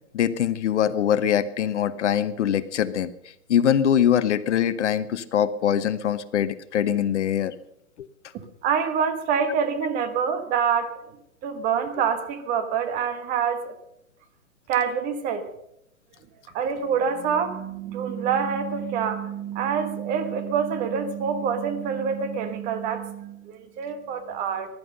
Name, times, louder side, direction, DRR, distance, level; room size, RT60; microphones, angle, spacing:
voice 1, 0.1-3.1 3.5-7.5 8.0-8.1, left 9 dB, 55° left, 15 dB, 0.9 m, -23 dB
voice 2, 8.6-10.9 11.4-13.7 14.7-15.4 16.5-24.7, right 7 dB, 20° right, 9 dB, 1.2 m, -26 dB
16.0 x 11.5 x 6.5 m, 0.81 s
hypercardioid pair, 145°, 42 cm